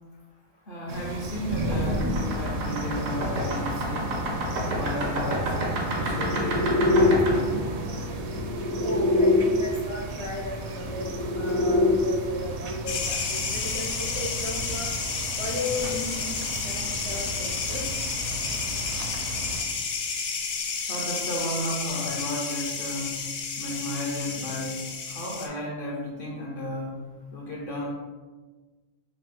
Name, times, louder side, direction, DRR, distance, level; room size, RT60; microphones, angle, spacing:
voice 1, 0.7-4.2 4.6-5.5 5.9-7.7 11.5-11.6 20.9-23.3 23.6-27.9, left 1 dB, 55° left, -3 dB, 0.6 m, -33 dB
sound 1, 0.9-19.6, right 1 dB, 65° right, 0.7 m, -36 dB
sound 2, 1.5-9.4 10.6-11.9, left 1 dB, 85° right, 1.3 m, -26 dB
voice 2, 8.8-11.1 11.3-14.9 15.3-17.9 25.5-25.6, left 2 dB, 45° right, -5 dB, 0.4 m, -35 dB
sound 3, 12.9-25.5, left 5 dB, 85° left, 1.2 m, -31 dB
4.1 x 2.6 x 3.6 m, 1.3 s
omnidirectional pair, 1.4 m